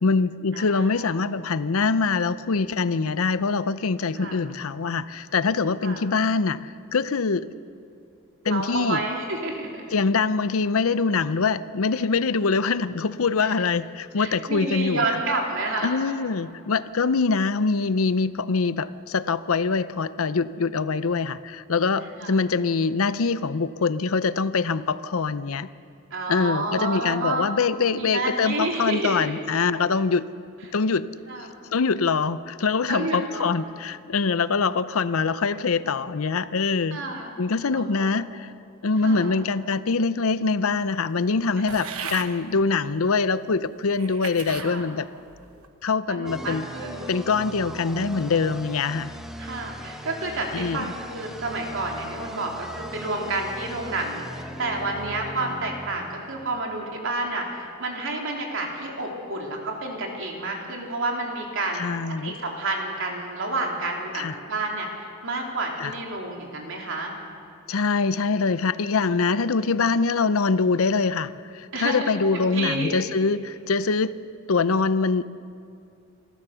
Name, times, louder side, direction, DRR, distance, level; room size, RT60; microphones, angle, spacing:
voice 1, 0.0-7.5 8.4-9.0 9.9-15.0 15.8-25.7 26.3-30.3 30.7-31.1 31.7-37.0 37.4-38.5 38.8-45.1 45.8-46.7 47.1-49.1 50.5-50.8 61.8-62.3 64.1-64.3 65.8-65.9 67.7-74.1 74.5-75.2, left 4 dB, 75° left, 15 dB, 0.6 m, -24 dB
voice 2, 0.5-1.1 4.2-4.4 5.8-6.0 8.4-10.0 13.4-13.5 14.2-16.0 22.2-22.4 26.1-27.5 27.9-29.3 31.3-31.5 32.9-33.6 36.9-37.3 37.7-38.2 39.0-39.3 41.6-41.9 44.5-44.8 46.1-47.1 49.4-61.8 62.1-67.1 71.7-73.0, right 2 dB, 65° right, 0 dB, 3.5 m, -30 dB
sound 1, 41.7-42.3 43.1-43.2 43.9-44.7 45.3-45.7, right 6 dB, 85° right, 1.3 m, -36 dB
sound 2, 46.2-56.9, equal, ahead, 1.1 m, -39 dB
28.5 x 13.5 x 7.0 m, 2.4 s
head